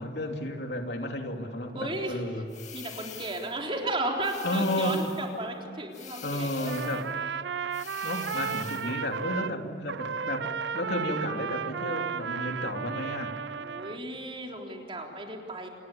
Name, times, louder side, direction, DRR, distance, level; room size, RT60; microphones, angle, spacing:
voice 1, 0.0-2.4 4.4-5.0 6.2-7.1 8.0-10.5 10.7-13.3, left 1 dB, 75° left, 3 dB, 2.9 m, -32 dB
voice 2, 1.7-2.2 2.7-7.0 13.6-15.7, right 1 dB, 30° right, 1 dB, 3.7 m, -34 dB
sound 1, 2.5-3.6 4.2-5.3 5.9-7.1 7.7-9.0, left 8 dB, 40° left, 2.5 m, -44 dB
Trumpet, 6.6-9.6 9.9-14.0, right 6 dB, 85° right, 0.5 m, -34 dB
28.0 x 20.5 x 8.6 m, 2.7 s
head